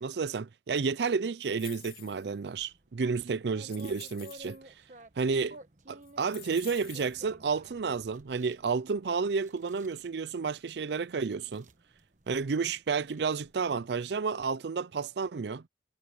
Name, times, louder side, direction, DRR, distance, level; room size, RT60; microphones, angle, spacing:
voice 1, 0.0-4.6 5.2-5.6 5.9-11.6 12.3-15.6, right 5 dB, 70° right, 0.5 m, -31 dB
sound 1, 1.4-2.4 3.0-3.1 3.6-4.6 5.5-5.6 6.0-7.2, left 14 dB, 55° left, 0.9 m, -50 dB
sound 2, 2.5-14.2, right 1 dB, 45° right, 1.3 m, -55 dB
head